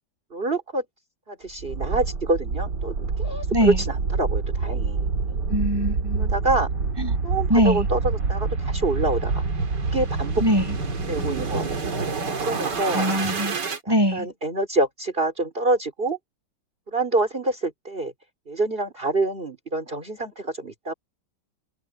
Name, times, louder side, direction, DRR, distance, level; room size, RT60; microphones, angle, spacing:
voice 1, 0.3-0.8 1.3-5.4 6.2-6.7 7.2-9.4 9.8-10.4 11.1-11.9 12.4-13.1 13.8-16.2 16.9-18.1 18.5-20.9, right 2 dB, 30° right, 4.2 m, -26 dB
sound 1, 1.6-13.8, right 4 dB, 75° right, 2.9 m, -27 dB
voice 2, 5.5-6.3 7.0-7.1 7.5-7.9 10.4-10.7 12.9-13.6 13.9-14.3, equal, 15° right, 7.6 m, -22 dB
open air
omnidirectional pair, 1.9 m